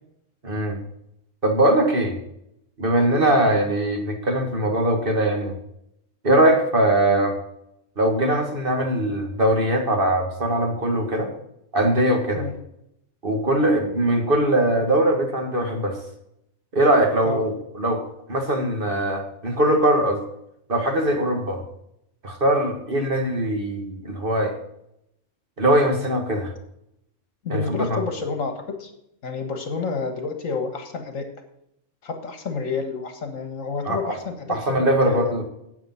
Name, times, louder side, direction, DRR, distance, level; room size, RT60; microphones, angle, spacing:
voice 1, 0.4-0.8 1.4-2.2 2.8-5.6 6.2-7.4 8.0-11.3 11.7-12.5 13.2-16.0 16.7-18.0 18.3-20.2 20.7-21.6 22.2-24.5 25.6-26.5 27.5-28.0 33.9-34.2 34.5-35.4, right 1 dB, 40° right, 3 dB, 2.0 m, -21 dB
voice 2, 27.4-28.9 29.2-31.3 32.0-35.4, left 4 dB, 75° left, 6 dB, 2.0 m, -29 dB
9.6 x 8.6 x 5.8 m, 0.78 s
omnidirectional pair, 1.4 m